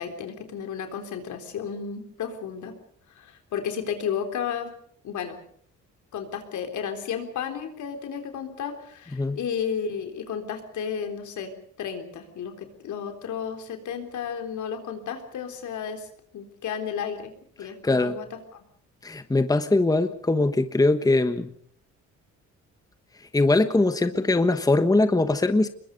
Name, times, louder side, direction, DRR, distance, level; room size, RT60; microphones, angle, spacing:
voice 1, 0.0-2.7 3.2-4.7 5.0-5.4 6.1-11.5 11.8-16.1 16.3-17.3 17.6-18.3, left 7 dB, 75° left, 6 dB, 3.8 m, -33 dB
voice 2, 17.6-18.2 19.0-21.5 23.2-25.7, left 2 dB, 10° left, 10 dB, 1.2 m, -22 dB
25.5 x 21.5 x 5.3 m, 0.63 s
cardioid pair, 90°, 30 cm